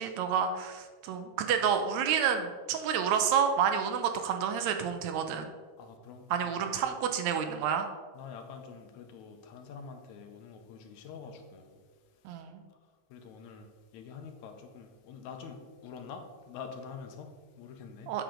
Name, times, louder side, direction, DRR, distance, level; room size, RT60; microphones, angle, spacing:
voice 1, 0.0-5.5 6.3-7.9 12.3-12.6 18.1-18.2, right 7 dB, 75° right, 6 dB, 1.8 m, -29 dB
voice 2, 5.8-6.3 6.7-6.9 8.1-11.8 13.1-18.2, left 5 dB, 80° left, 5 dB, 2.1 m, -46 dB
7.7 x 6.6 x 3.8 m, 1.5 s
omnidirectional pair, 3.4 m